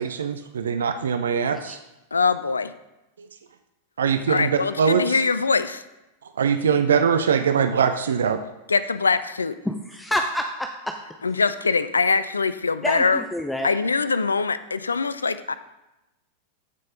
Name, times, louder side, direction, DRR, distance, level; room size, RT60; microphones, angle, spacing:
voice 1, 0.0-1.8 4.0-4.5 4.8-5.0 6.4-8.4, right 7 dB, 65° right, 9 dB, 0.5 m, -22 dB
voice 2, 2.1-2.7 4.3-5.8 8.7-9.6 11.2-13.2 13.6-15.5, left 4 dB, 75° left, 14 dB, 0.4 m, -23 dB
voice 3, 9.6-11.0 12.8-13.7, equal, 5° left, 4 dB, 0.6 m, -28 dB
14.0 x 5.3 x 3.7 m, 0.95 s
figure-of-eight pair, 90°, 0 cm